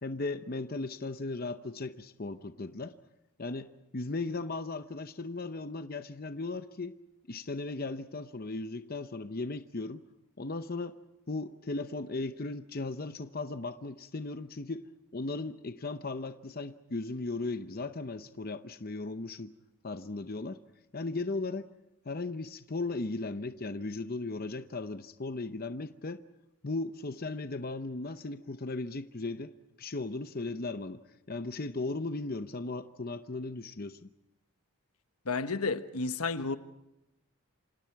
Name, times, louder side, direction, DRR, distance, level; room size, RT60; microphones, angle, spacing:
voice 1, 0.0-3.0 3.4-7.0 7.3-10.0 10.4-11.0 11.3-14.9 15.1-19.5 19.8-20.6 20.9-21.7 22.0-26.2 26.6-31.0 31.3-34.1, left 3 dB, 40° left, 0.8 m, -37 dB
voice 2, 35.2-36.6, left 4 dB, 85° left, 1.3 m, -31 dB
28.0 x 26.5 x 4.7 m
head